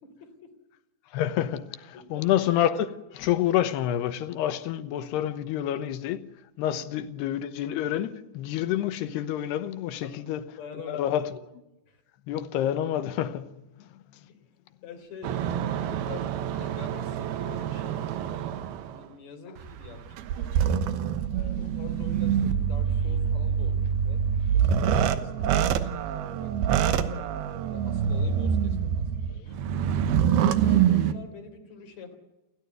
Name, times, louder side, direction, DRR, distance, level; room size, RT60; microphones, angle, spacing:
voice 1, 0.0-0.5 1.9-2.3 6.7-6.8 10.0-10.2 10.6-11.2 11.9-12.0 14.3-14.4 14.8-20.8 21.3-24.2 24.5-27.4 27.7-29.6 30.2-32.2, left 5 dB, 40° left, 4.4 m, -46 dB
voice 2, 1.1-6.3 6.6-10.4 10.9-11.3 12.3-14.0, left 11 dB, 75° left, 3.0 m, -28 dB
sound 1, 15.2-19.0 19.6-31.1, right 8 dB, 70° right, 2.8 m, -26 dB
29.0 x 14.0 x 9.4 m
omnidirectional pair, 5.1 m